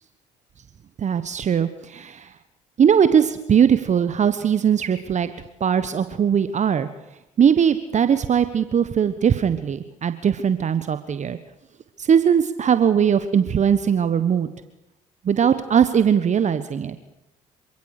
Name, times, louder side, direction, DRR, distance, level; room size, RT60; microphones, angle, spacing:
voice 1, 1.0-2.3 2.8-5.3 5.6-6.9 7.4-11.4 12.0-14.5 15.2-17.0, right 8 dB, 45° right, 11 dB, 1.3 m, -20 dB
27.0 x 17.0 x 6.7 m, 0.93 s
hypercardioid pair, 55°, 17 cm